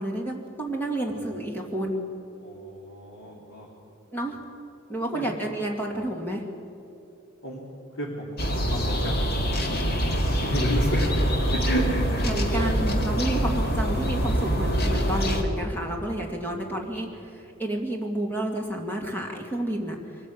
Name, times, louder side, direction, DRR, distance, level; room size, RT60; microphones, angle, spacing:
voice 1, 0.0-2.1 4.1-4.4 4.9-6.4 12.2-20.0, right 1 dB, 10° left, 0 dB, 2.4 m, -30 dB
voice 2, 1.0-1.3 2.4-3.7 5.1-5.5 7.4-7.6 8.0-8.4 8.7-11.1 11.5-12.3 12.5-12.7 16.6-16.8, equal, 85° left, -5 dB, 3.3 m, -31 dB
sound 1, 8.4-15.4, equal, 50° left, 2.1 m, -25 dB
23.5 x 14.5 x 8.8 m, 2.8 s
head